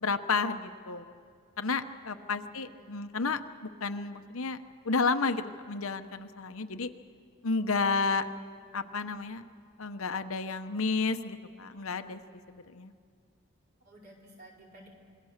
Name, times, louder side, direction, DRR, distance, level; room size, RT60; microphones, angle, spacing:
voice 1, 0.0-1.0 1.6-4.6 4.8-6.9 7.4-8.3 8.7-9.4 9.8-12.2 12.5-12.9, left 4 dB, 90° left, 8 dB, 1.0 m, -31 dB
voice 2, 2.3-2.9 13.8-14.9, right 1 dB, 45° right, -2 dB, 4.7 m, -54 dB
26.5 x 21.0 x 6.6 m, 2.2 s
head